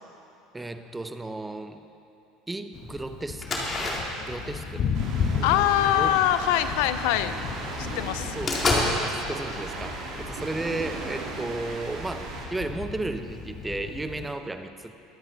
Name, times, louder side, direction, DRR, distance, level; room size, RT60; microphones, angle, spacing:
voice 1, 0.5-1.9 2.5-4.0 4.2-4.9 5.4-6.2 8.4-8.7 9.0-15.0, right 2 dB, 10° right, 9 dB, 0.7 m, -34 dB
Thunder, 2.7-14.4, left 6 dB, 50° left, 1.3 m, -35 dB
sound 1, 3.4-7.2 7.6-7.7 8.0-8.9, left 2 dB, 35° left, 2.5 m, -30 dB
sound 2, 4.9-12.5, right 3 dB, 60° right, 2.7 m, -37 dB
voice 2, 5.4-7.3 7.8-8.4, left 12 dB, 75° left, 12 dB, 0.5 m, -23 dB
22.0 x 8.0 x 4.0 m, 2.9 s
supercardioid pair, 90°, 0 cm